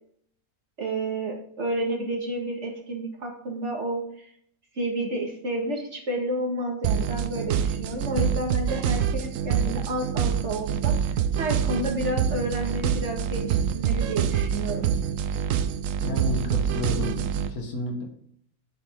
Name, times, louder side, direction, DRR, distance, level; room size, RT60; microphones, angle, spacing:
voice 1, 0.8-4.3 4.7-14.9, right 1 dB, 50° right, 0 dB, 2.3 m, -30 dB
sound 1, 6.8-17.5, right 8 dB, 70° right, 1.0 m, -26 dB
voice 2, 16.0-18.0, left 2 dB, 85° left, 2 dB, 2.2 m, -31 dB
9.4 x 8.0 x 3.8 m, 0.67 s
omnidirectional pair, 1.5 m